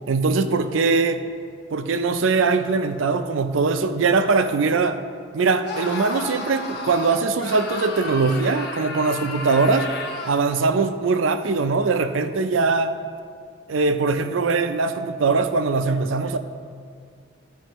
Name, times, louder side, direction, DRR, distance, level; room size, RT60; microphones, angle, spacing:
voice 1, 0.1-1.2 1.7-5.0 5.3-9.9 10.3-12.9 13.7-16.4, right 4 dB, 70° right, 9 dB, 0.5 m, -21 dB
Screaming, 5.6-10.5, left 3 dB, 55° left, 0.9 m, -33 dB
14.5 x 5.4 x 3.0 m, 2.1 s
head